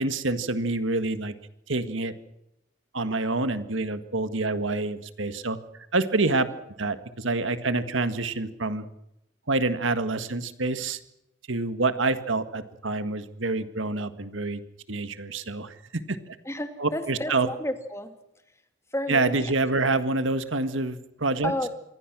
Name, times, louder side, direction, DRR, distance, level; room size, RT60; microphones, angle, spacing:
voice 1, 0.0-1.3 1.7-2.1 2.9-5.6 5.9-6.5 6.8-8.9 9.5-11.0 11.5-14.6 14.9-16.4 16.8-17.5 19.1-21.5, right 3 dB, 70° right, 10 dB, 1.9 m, -27 dB
voice 2, 16.5-18.1 18.9-19.5 21.4-21.7, left 1 dB, 15° left, 7 dB, 2.5 m, -31 dB
27.0 x 22.5 x 6.2 m, 0.84 s
head